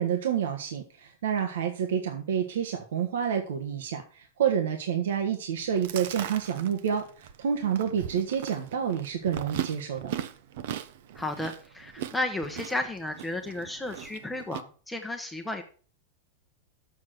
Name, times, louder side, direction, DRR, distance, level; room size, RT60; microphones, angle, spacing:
voice 1, 0.0-10.1, right 8 dB, 90° right, 4 dB, 1.4 m, -29 dB
Chewing mastication, 5.6-14.6, right 11 dB, 60° right, 0.8 m, -39 dB
voice 2, 11.1-15.6, left 2 dB, 5° left, 3 dB, 0.9 m, -33 dB
7.2 x 6.3 x 7.8 m, 0.41 s
supercardioid pair, 170°, 0 cm